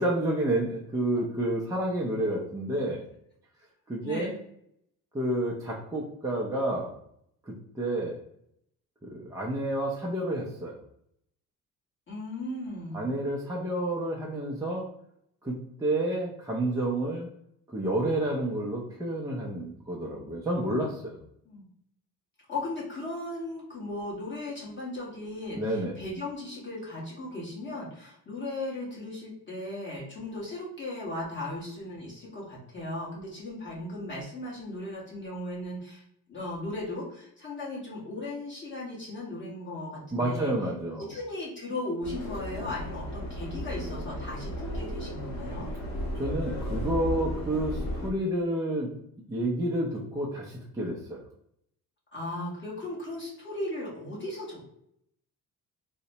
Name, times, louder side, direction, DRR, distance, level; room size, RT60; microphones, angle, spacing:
voice 1, 0.0-3.0 3.9-4.3 5.1-6.9 7.5-8.2 9.0-10.8 12.9-14.8 15.4-17.3 17.7-21.2 25.6-26.0 40.1-41.1 46.1-48.9 49.3-51.2, right 1 dB, 10° right, -4 dB, 0.4 m, -30 dB
voice 2, 4.0-4.4 12.1-13.1 21.4-21.6 22.5-36.0 36.3-40.5 41.1-45.7 52.1-54.7, left 1 dB, 30° left, -6 dB, 1.3 m, -37 dB
Subway metro underground, 42.0-48.1, equal, 45° left, 0.7 m, -34 dB
3.9 x 2.1 x 2.7 m, 0.74 s
cardioid pair, 130°, 37 cm